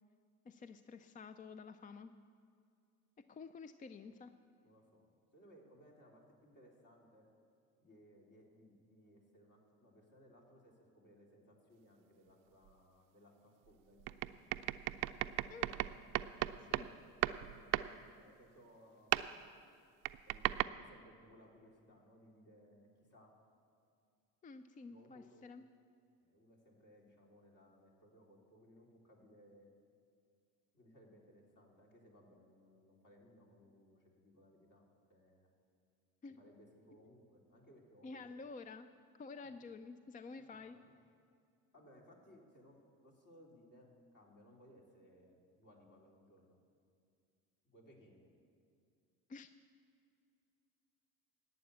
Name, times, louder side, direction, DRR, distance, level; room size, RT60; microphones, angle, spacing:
voice 1, 0.5-2.1 3.3-4.3 15.5-15.7 16.6-16.9 24.4-25.6 36.2-36.4 38.0-38.9 39.2-40.8 49.3-49.5, left 4 dB, 20° left, 11 dB, 0.4 m, -50 dB
voice 2, 4.6-5.0 5.3-7.3 7.8-14.4 16.5-17.1 17.6-17.9 18.2-19.1 20.3-23.3 24.9-25.5 26.2-29.7 30.7-35.5 36.4-38.4 39.3-39.6 40.3-41.0 41.7-42.8 43.0-43.9 44.1-46.6 47.6-48.3, equal, 45° left, -2 dB, 3.7 m, -63 dB
sound 1, 12.7-12.8 14.0-16.9 17.2-17.9 19.1-19.4 20.0-20.6, right 16 dB, 50° right, 0.5 m, -36 dB
12.0 x 8.7 x 8.3 m, 2.3 s
hypercardioid pair, 70°, 44 cm